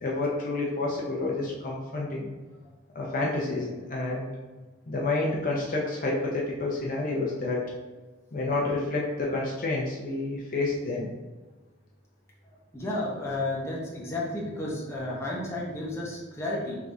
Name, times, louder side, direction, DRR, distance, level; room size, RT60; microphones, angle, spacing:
voice 1, 0.0-2.3 2.9-4.3 4.9-7.6 8.3-11.1, left 2 dB, 45° left, -3 dB, 0.7 m, -29 dB
voice 2, 12.4-16.8, left 1 dB, 15° left, -5 dB, 0.9 m, -32 dB
4.5 x 3.5 x 2.6 m, 1.2 s
head